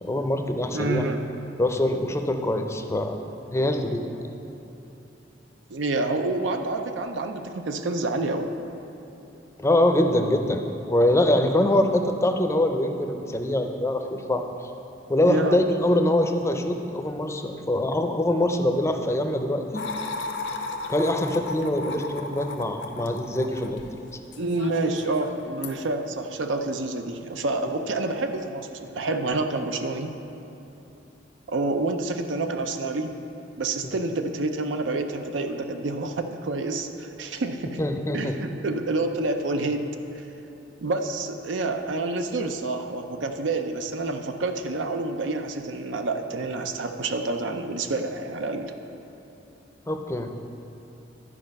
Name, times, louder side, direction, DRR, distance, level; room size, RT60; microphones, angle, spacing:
voice 1, 0.0-1.1 1.6-3.1 3.5-4.1 9.6-10.6 10.9-14.4 15.1-19.8 20.9-23.8 33.8-34.0 37.8-38.4 49.9-50.3, left 1 dB, 15° left, 5 dB, 0.5 m, -24 dB
voice 2, 0.7-1.2 5.7-8.5 15.3-15.6 24.4-28.7 28.9-30.1 31.5-33.1 33.6-37.8 38.1-39.9 40.8-48.7, right 2 dB, 90° right, 6 dB, 0.6 m, -28 dB
sound 1, 19.7-25.8, left 3 dB, 70° left, 0.6 m, -35 dB
11.0 x 4.8 x 5.3 m, 3.0 s
head